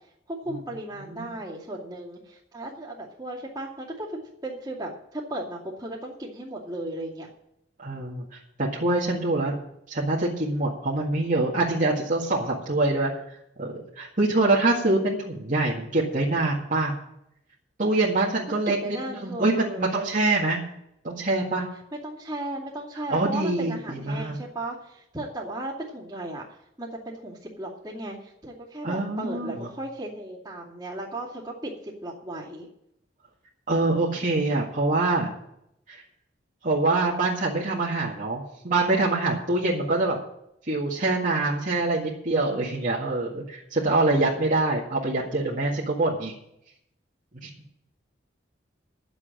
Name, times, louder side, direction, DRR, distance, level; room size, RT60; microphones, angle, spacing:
voice 1, 0.3-7.3 18.5-19.9 22.0-32.7, right 1 dB, 20° right, -11 dB, 2.5 m, -36 dB
voice 2, 7.8-8.3 8.6-9.5 9.9-16.9 17.8-20.6 21.0-21.6 23.1-24.4 28.8-29.7 33.7-35.3 35.9-36.0 36.6-40.2 40.7-46.3 47.4-47.5, right 2 dB, 45° right, -5 dB, 1.9 m, -25 dB
10.5 x 7.5 x 8.8 m, 0.78 s
head